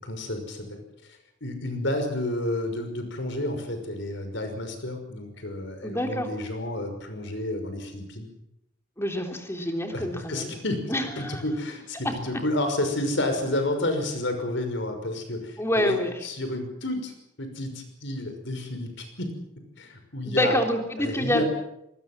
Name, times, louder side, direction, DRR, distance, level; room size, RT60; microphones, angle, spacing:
voice 1, 0.0-8.3 9.9-19.4 19.8-20.6 21.0-21.4, left 1 dB, 60° left, 7 dB, 5.8 m, -31 dB
voice 2, 5.8-6.3 9.0-10.6 10.9-11.4 15.6-16.1 20.2-21.4, left 1 dB, 15° left, 4 dB, 3.5 m, -27 dB
25.0 x 20.5 x 7.6 m, 0.81 s
head